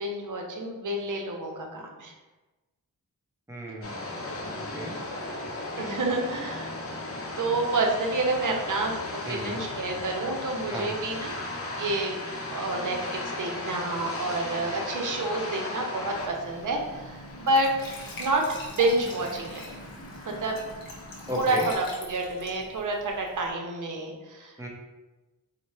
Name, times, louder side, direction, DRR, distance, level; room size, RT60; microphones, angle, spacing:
voice 1, 0.0-2.1 3.7-3.8 5.8-6.7 7.4-8.9 9.3-11.3 11.8-12.2 12.5-17.7 18.2-19.6 20.2-20.6 21.3-24.7, right 2 dB, 60° right, 1 dB, 0.7 m, -29 dB
voice 2, 3.5-4.9 9.3-9.6 10.7-10.9 21.3-21.7 24.6-24.7, equal, 10° right, -2 dB, 0.7 m, -36 dB
sound 1, 3.8-21.7, left 2 dB, 40° left, 0.7 m, -37 dB
Glass / Trickle dribble / Fill (with liquid), 16.2-23.5, left 2 dB, 75° left, 0.8 m, -44 dB
4.1 x 2.1 x 3.1 m, 1.1 s
wide cardioid pair, 90°, 35 cm